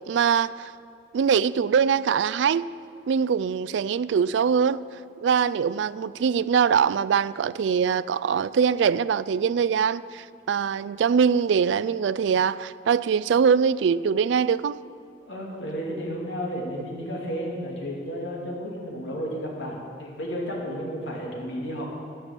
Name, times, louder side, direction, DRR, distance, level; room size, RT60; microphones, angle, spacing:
voice 1, 0.1-0.7 1.1-2.7 3.1-4.8 5.2-14.8, right 6 dB, 70° right, 17 dB, 0.3 m, -23 dB
voice 2, 15.2-21.9, equal, 75° left, -2 dB, 2.8 m, -32 dB
14.0 x 6.0 x 8.1 m, 2.4 s
head